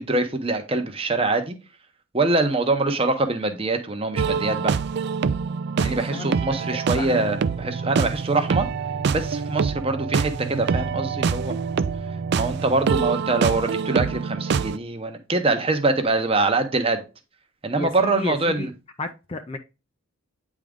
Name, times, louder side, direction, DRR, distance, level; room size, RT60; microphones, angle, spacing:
voice 1, 0.0-1.6 2.1-4.8 5.8-8.7 9.1-11.6 12.3-17.0 17.6-18.7, right 3 dB, 25° right, 0.7 m, -24 dB
sound 1, 4.2-14.8, right 5 dB, 50° right, 0.3 m, -25 dB
voice 2, 5.7-7.2 17.8-18.7 19.0-19.6, left 2 dB, 25° left, 0.4 m, -33 dB
8.9 x 3.6 x 3.6 m
head